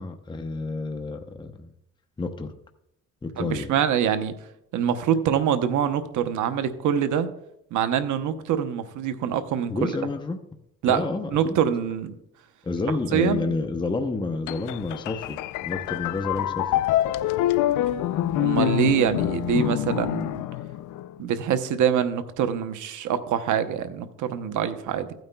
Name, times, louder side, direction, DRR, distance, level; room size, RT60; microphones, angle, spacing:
voice 1, 0.0-1.7 2.2-2.5 3.2-3.8 9.7-10.4 10.9-11.6 12.6-16.8, left 3 dB, 15° left, 6 dB, 0.7 m, -29 dB
voice 2, 3.4-4.4 4.7-7.3 7.7-9.9 10.8-12.1 13.1-13.6 17.9-18.0 18.4-20.4 21.2-25.1, right 8 dB, 80° right, 10 dB, 0.8 m, -25 dB
sound 1, 14.5-21.2, left 13 dB, 80° left, 0.5 m, -26 dB
15.0 x 9.1 x 2.2 m, 0.79 s
cardioid pair, 90°, 30 cm